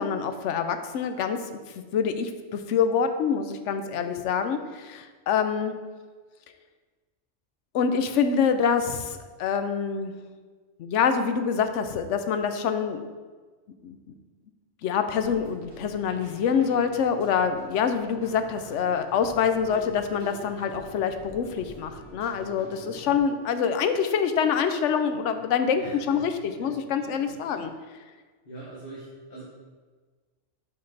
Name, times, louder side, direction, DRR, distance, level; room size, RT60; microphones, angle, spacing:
voice 1, 0.0-1.4 1.9-5.7 7.7-10.1 10.8-13.0 13.8-14.0 14.8-27.7, left 7 dB, 90° left, 8 dB, 0.9 m, -26 dB
Keyboard (musical), 15.2-23.2, right 1 dB, 40° right, 2.1 m, -46 dB
voice 2, 25.8-26.3 26.6-27.6 28.4-29.4, right 2 dB, 45° left, -8 dB, 1.6 m, -44 dB
5.9 x 5.3 x 4.0 m, 1.4 s
omnidirectional pair, 1.2 m